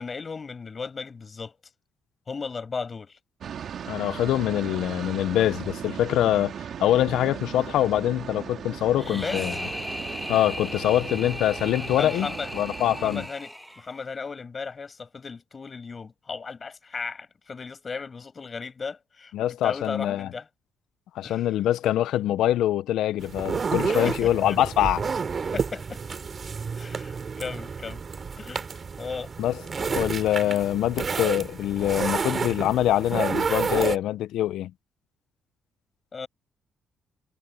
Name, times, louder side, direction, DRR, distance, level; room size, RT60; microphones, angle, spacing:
voice 1, 0.0-1.6 2.3-3.2 9.1-9.5 11.9-12.5 12.8-20.5 21.2-21.5 23.9-24.6 25.5-26.0 26.7-28.0 28.4-28.7 29.0-29.3 30.4-30.6 36.1-36.3, left 5 dB, 35° left, 7.1 m, -36 dB
sound 1, 3.4-13.3, right 8 dB, 60° right, 2.1 m, -38 dB
voice 2, 3.9-6.5 6.8-9.6 10.3-12.3 12.5-13.2 19.3-20.3 21.1-25.1 29.4-34.7, left 12 dB, 85° left, 0.5 m, -24 dB
sound 2, 9.0-14.1, equal, ahead, 1.3 m, -36 dB
sound 3, 23.2-34.0, right 5 dB, 40° right, 2.8 m, -30 dB
cardioid pair, 90°, 0 cm